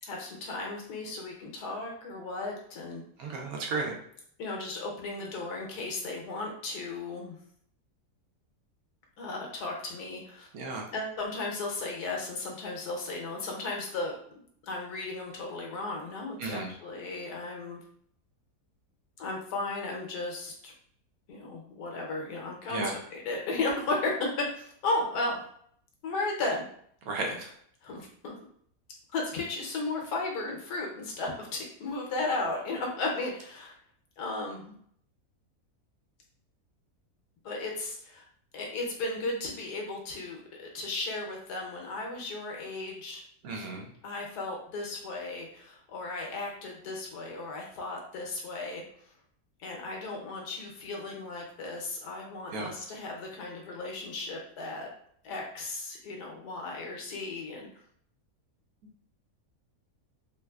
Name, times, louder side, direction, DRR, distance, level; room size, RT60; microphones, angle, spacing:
voice 1, 0.0-3.0 4.4-7.4 9.2-10.5 10.9-14.2 14.6-17.8 19.2-20.7 21.3-22.8 23.1-24.3 24.6-25.4 26.0-26.7 27.8-28.3 29.1-33.8 34.2-34.7 37.4-38.3 38.5-43.2 44.0-48.8 49.6-54.9 55.2-57.7, left 2 dB, 80° left, 0 dB, 1.4 m, -35 dB
voice 2, 3.2-3.9 10.5-10.9 16.4-16.7 22.7-22.9 27.1-27.5 43.4-43.9 52.5-52.7, right 3 dB, 70° right, 0 dB, 1.1 m, -33 dB
3.3 x 3.1 x 2.3 m, 0.64 s
omnidirectional pair, 1.7 m